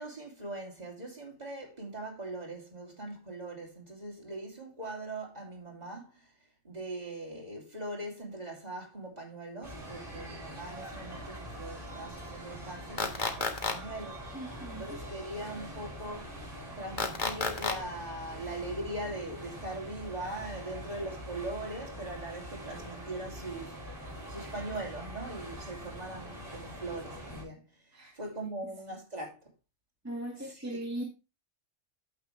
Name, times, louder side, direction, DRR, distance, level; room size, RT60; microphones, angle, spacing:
voice 1, 0.0-6.3 6.6-16.3 16.8-23.8 24.3-27.6 28.1-29.4 30.3-30.8, right 2 dB, 35° right, 3.1 m, -41 dB
sound 1, 9.6-27.4, equal, 15° left, 5.8 m, -44 dB
sound 2, 13.0-13.7 17.0-17.7, left 4 dB, 45° left, 1.3 m, -30 dB
voice 2, 14.3-15.0 27.9-28.1 30.0-31.0, right 1 dB, 15° right, 1.9 m, -38 dB
8.9 x 7.7 x 3.3 m
omnidirectional pair, 1.2 m